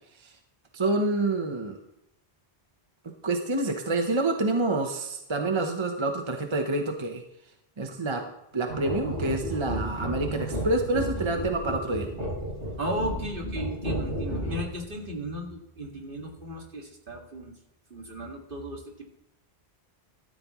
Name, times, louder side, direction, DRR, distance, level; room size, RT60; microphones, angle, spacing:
voice 1, 0.7-1.8 3.2-7.2 7.8-8.2 8.5-12.1, right 2 dB, 30° right, 4 dB, 1.0 m, -27 dB
sound 1, 8.7-14.8, right 1 dB, 70° right, 5.4 m, -32 dB
voice 2, 12.8-17.5 17.9-18.8, equal, 55° right, 0 dB, 2.3 m, -35 dB
13.5 x 12.0 x 3.1 m, 0.81 s
omnidirectional pair, 1.1 m